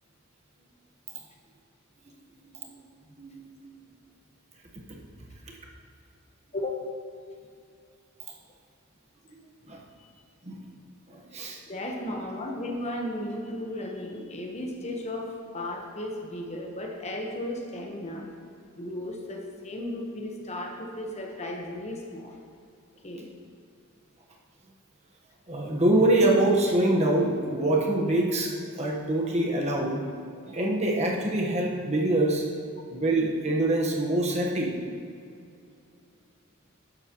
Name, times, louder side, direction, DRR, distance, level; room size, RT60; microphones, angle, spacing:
voice 1, 3.2-3.8 9.3-9.4 9.7-9.8 10.4-10.6 11.1-11.6 25.5-30.0 30.4-32.4 32.9-34.8, right 1 dB, 30° right, -1 dB, 1.2 m, -25 dB
voice 2, 6.5-6.8 10.0-10.1 11.7-18.3 18.8-22.4 23.0-23.3, left 1 dB, 30° left, 1 dB, 1.1 m, -35 dB
12.0 x 8.9 x 3.0 m, 2.5 s
head